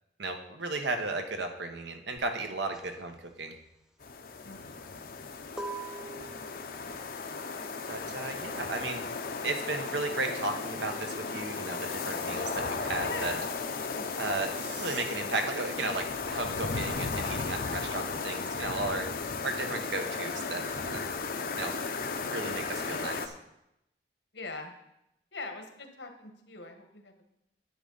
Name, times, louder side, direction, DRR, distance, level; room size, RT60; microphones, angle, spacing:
voice 1, 0.2-3.5 7.9-9.0 9.4-13.3 14.2-19.1 19.4-21.0 21.5-21.7 22.2-23.3, right 2 dB, 75° right, 5 dB, 1.1 m, -34 dB
sound 1, 2.2-12.4 12.7-16.9, right 3 dB, 5° right, 0.6 m, -47 dB
sound 2, 4.0-23.3, left 4 dB, 55° left, 0.7 m, -35 dB
voice 2, 4.4-4.9 13.0-13.5 13.8-14.1 24.3-24.7 25.3-27.2, left 3 dB, 75° left, 5 dB, 1.3 m, -42 dB
sound 3, 13.9-15.0, right 5 dB, 55° right, 2.0 m, -47 dB
10.0 x 8.7 x 4.0 m, 0.83 s
head